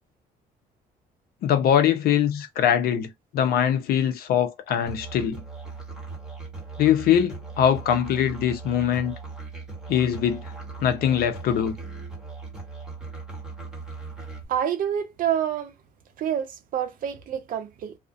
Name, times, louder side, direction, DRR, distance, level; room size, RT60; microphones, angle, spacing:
voice 1, 1.4-5.4 6.8-9.1 9.9-10.5 10.8-11.8, left 9 dB, 65° left, 0.6 m, -22 dB
Musical instrument, 4.9-14.5, right 4 dB, 5° right, 1.1 m, -39 dB
voice 2, 14.5-15.7 16.2-18.0, right 9 dB, 55° right, 0.6 m, -27 dB
2.4 x 2.1 x 2.4 m
cardioid pair, 110°, 17 cm